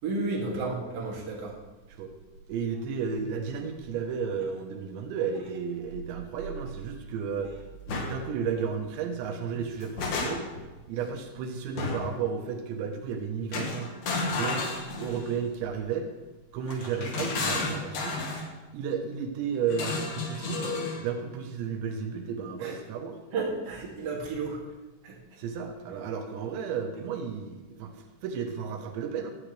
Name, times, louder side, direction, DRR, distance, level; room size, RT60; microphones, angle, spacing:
voice 1, 0.0-1.6 22.6-22.8 23.3-24.6 25.0-25.2, right 3 dB, 40° right, -4 dB, 3.0 m, -32 dB
voice 2, 2.5-7.6 7.9-10.4 10.9-13.9 14.3-16.1 16.5-18.2 18.7-20.7 21.0-23.2 25.4-29.3, right 6 dB, 90° right, 4 dB, 3.4 m, -33 dB
sound 1, 7.9-8.1 9.5-10.7 11.8-12.2 13.5-15.4 16.7-18.5 19.7-21.0, left 3 dB, 55° left, 2.8 m, -32 dB
15.0 x 12.0 x 3.4 m, 1.1 s
omnidirectional pair, 5.0 m